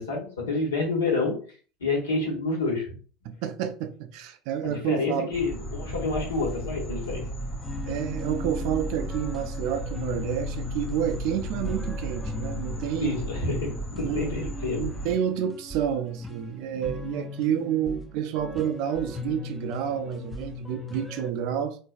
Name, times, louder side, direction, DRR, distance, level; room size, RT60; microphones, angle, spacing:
voice 1, 0.0-1.4 1.8-2.9 4.6-7.3 13.0-14.9, left 3 dB, 85° left, 1.2 m, -28 dB
voice 2, 3.2-5.3 7.9-13.2 14.0-14.3 14.8-21.8, right 9 dB, 60° right, 0.4 m, -29 dB
sound 1, 5.3-15.1, right 1 dB, 25° left, 1.3 m, -35 dB
sound 2, 6.3-21.3, left 4 dB, 10° left, 0.5 m, -39 dB
3.7 x 2.6 x 2.3 m
hypercardioid pair, 75°, 0 cm